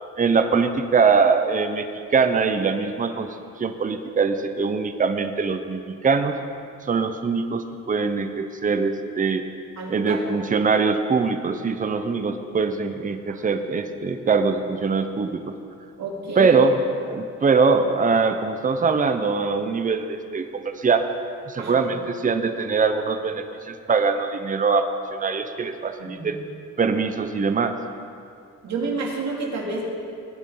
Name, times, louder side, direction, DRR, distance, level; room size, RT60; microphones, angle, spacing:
voice 1, 0.2-1.9 2.1-3.3 3.6-6.3 6.9-9.4 9.9-15.5 16.4-16.8 17.0-21.0 21.5-24.8 25.1-26.4 26.8-27.7, right 5 dB, 25° right, 8 dB, 0.8 m, -22 dB
voice 2, 9.8-10.2 13.3-13.4 16.0-16.6 21.6-21.8 26.0-26.3 28.6-29.8, right 3 dB, 65° right, -2 dB, 2.8 m, -29 dB
19.0 x 10.0 x 3.9 m, 2.5 s
cardioid pair, 90°, 30 cm